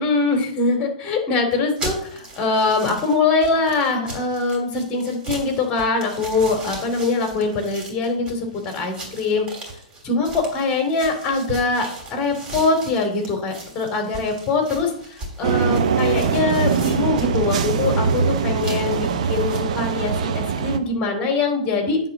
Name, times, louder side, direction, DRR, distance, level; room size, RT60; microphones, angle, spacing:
voice 1, 0.0-8.5 8.7-9.5 10.0-11.8 12.1-22.0, left 3 dB, 30° left, 4 dB, 2.7 m, -22 dB
sound 1, 1.5-19.6, right 2 dB, 20° right, 3.2 m, -37 dB
sound 2, 15.4-20.8, right 6 dB, 60° right, 0.9 m, -22 dB
9.3 x 3.8 x 7.2 m, 0.64 s
hypercardioid pair, 120°, 4 cm